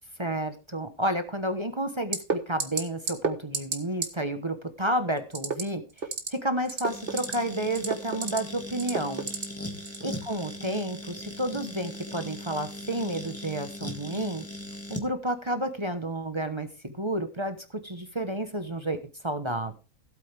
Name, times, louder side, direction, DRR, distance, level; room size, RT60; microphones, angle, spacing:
voice 1, 0.2-5.8 6.3-9.3 10.0-14.5 14.9-19.7, right 1 dB, 20° right, 7 dB, 1.0 m, -31 dB
sound 1, 2.1-2.3 2.6-2.8 3.1-3.3 3.5-3.8 4.0-4.1 5.3-5.6 6.0-6.3 6.7-7.3 7.7-8.4 8.8-9.4 9.9-10.0, right 4 dB, 40° right, 1.4 m, -28 dB
sound 2, 6.8-15.1, left 1 dB, 10° left, 1.7 m, -39 dB
16.0 x 8.5 x 3.4 m, 0.34 s
omnidirectional pair, 1.5 m